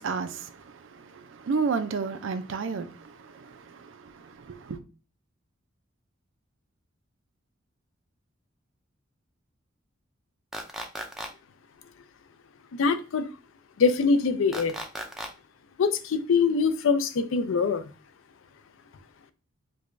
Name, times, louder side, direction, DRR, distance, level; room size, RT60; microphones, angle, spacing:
voice 1, 0.0-4.8, right 5 dB, 70° right, 0.4 m, -32 dB
sound 1, 10.5-11.3 14.5-15.3, equal, ahead, 0.4 m, -35 dB
voice 2, 12.8-13.3 13.8-14.7 15.8-17.8, left 5 dB, 85° left, 0.4 m, -23 dB
4.7 x 2.2 x 2.5 m
head